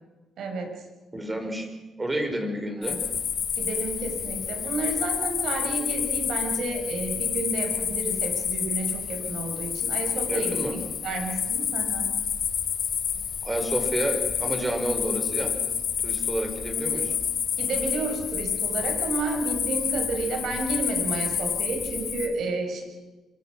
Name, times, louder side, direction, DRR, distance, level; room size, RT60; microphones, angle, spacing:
voice 1, 0.4-0.7 2.8-3.0 3.6-10.6 11.0-12.1 17.6-22.8, right 3 dB, 70° right, 4 dB, 6.1 m, -31 dB
voice 2, 1.1-1.7 2.0-3.0 10.3-10.7 13.4-15.5 16.0-17.1, right 1 dB, 20° right, 5 dB, 5.0 m, -29 dB
sound 1, 2.8-22.3, left 8 dB, 65° left, 5.0 m, -29 dB
26.0 x 23.5 x 6.4 m, 1.2 s
cardioid pair, 90°, 0 cm